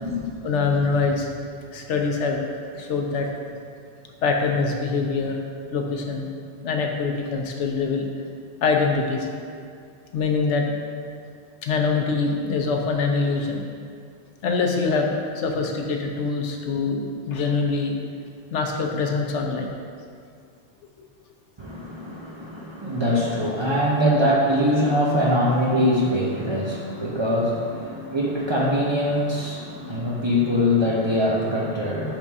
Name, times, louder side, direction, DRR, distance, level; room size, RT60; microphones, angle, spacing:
voice 1, 0.4-1.3 1.7-3.3 4.2-5.4 5.7-6.3 6.6-8.1 8.6-9.3 10.1-10.6 11.6-13.6 14.4-17.9 18.5-19.7 27.9-28.1 29.7-30.2, left 4 dB, 90° left, 2 dB, 1.0 m, -24 dB
voice 2, 21.6-32.2, equal, 30° right, -5 dB, 0.6 m, -23 dB
4.9 x 3.6 x 5.3 m, 2.3 s
omnidirectional pair, 1.2 m